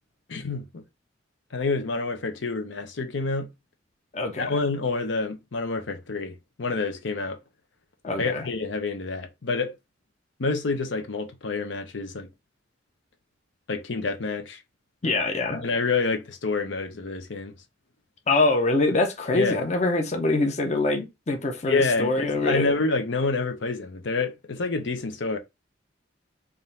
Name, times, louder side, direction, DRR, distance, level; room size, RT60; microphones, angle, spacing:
voice 1, 0.3-0.8 1.5-3.5 4.4-7.4 8.2-9.7 10.4-12.3 13.7-14.6 15.5-17.5 19.3-19.6 21.6-25.4, left 3 dB, 80° left, 0.8 m, -28 dB
voice 2, 4.1-4.6 8.0-8.5 15.0-15.6 18.3-22.7, left 2 dB, 35° left, 0.7 m, -24 dB
3.5 x 2.6 x 4.2 m
head